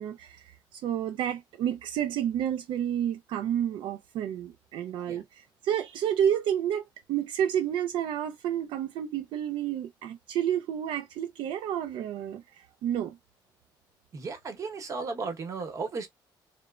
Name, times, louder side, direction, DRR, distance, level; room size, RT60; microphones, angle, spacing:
voice 1, 0.0-13.2, right 10 dB, 80° right, 0.3 m, -30 dB
voice 2, 14.1-16.1, right 4 dB, 40° right, 0.9 m, -35 dB
3.0 x 2.0 x 2.3 m
cardioid pair, 145°, 8 cm